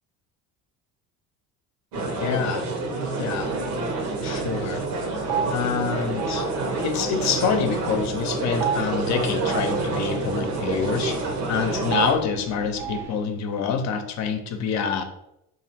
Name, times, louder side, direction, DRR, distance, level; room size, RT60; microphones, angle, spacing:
sound 1, 1.9-12.2, right 3 dB, 85° right, 1.0 m, -28 dB
voice 1, 2.0-2.6 3.2-3.5 4.2-4.8 5.5-6.4 6.8-11.1 11.5-15.0, left 6 dB, 55° left, 7 dB, 0.6 m, -26 dB
sound 2, 3.4-13.0, right 7 dB, 65° right, 0.5 m, -35 dB
sound 3, 4.4-13.3, equal, 10° right, 0.5 m, -46 dB
2.9 x 2.6 x 4.2 m, 0.81 s
cardioid pair, 125°, 33 cm